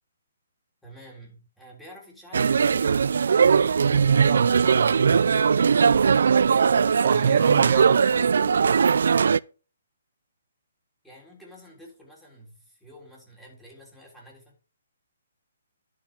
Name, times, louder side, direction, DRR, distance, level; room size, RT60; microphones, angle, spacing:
voice 1, 0.8-3.0 11.0-14.5, equal, 5° left, 3.5 m, -49 dB
sound 1, 2.3-9.4, right 6 dB, 70° right, 0.4 m, -20 dB
voice 2, 4.1-5.3 7.0-8.2, right 7 dB, 50° right, 1.1 m, -26 dB
sound 2, 5.2-8.6, left 7 dB, 50° left, 1.3 m, -47 dB
11.0 x 6.8 x 5.0 m
hypercardioid pair, 155°, 0 cm